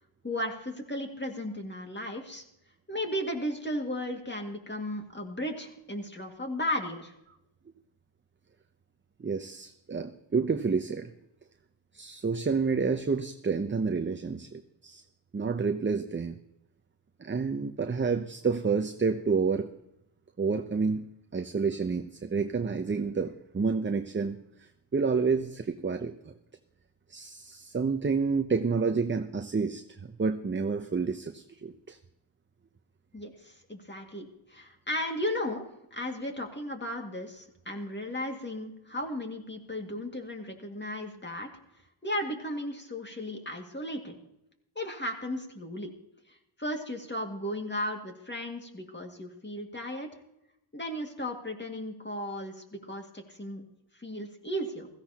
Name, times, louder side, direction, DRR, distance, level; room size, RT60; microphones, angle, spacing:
voice 1, 0.2-2.4 2.9-7.1 33.1-41.5 42.0-44.2 44.8-45.9 46.6-50.1 50.7-53.6 54.0-54.9, left 1 dB, 20° left, 3 dB, 2.1 m, -35 dB
voice 2, 9.2-11.1 11.9-15.0 15.3-16.4 17.2-19.7 20.4-26.3 27.1-32.0, right 5 dB, 25° right, 8 dB, 0.7 m, -29 dB
16.0 x 14.5 x 2.9 m, 0.84 s
cardioid pair, 70°, 48 cm